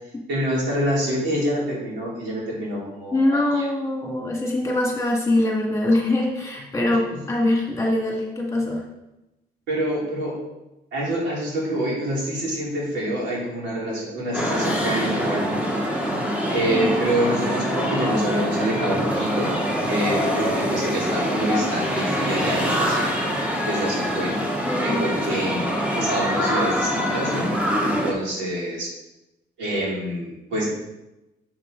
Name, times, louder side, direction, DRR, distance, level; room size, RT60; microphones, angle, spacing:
voice 1, 0.3-3.7 7.1-7.2 9.7-10.4 10.9-15.6 16.5-19.5 19.9-23.1 23.7-24.4 24.8-27.5 27.8-28.9 29.6-30.7, right 1 dB, 90° right, -5 dB, 3.1 m, -26 dB
voice 2, 3.1-8.8 16.7-16.9 24.7-25.0 25.5-25.6, left 1 dB, 15° left, -1 dB, 2.1 m, -23 dB
sound 1, 14.3-28.1, equal, 5° right, 1.6 m, -24 dB
7.0 x 6.5 x 3.9 m, 0.95 s
cardioid pair, 95°, 18 cm